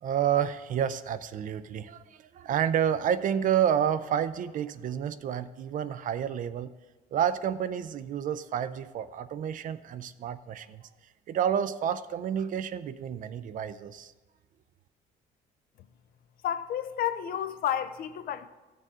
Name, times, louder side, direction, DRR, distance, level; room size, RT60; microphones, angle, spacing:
voice 1, 0.0-6.7 7.1-10.8 11.3-14.1, right 9 dB, 50° right, 0.5 m, -29 dB
voice 2, 16.4-18.5, left 10 dB, 60° left, 0.6 m, -31 dB
14.0 x 6.7 x 3.7 m
cardioid pair, 110°, 17 cm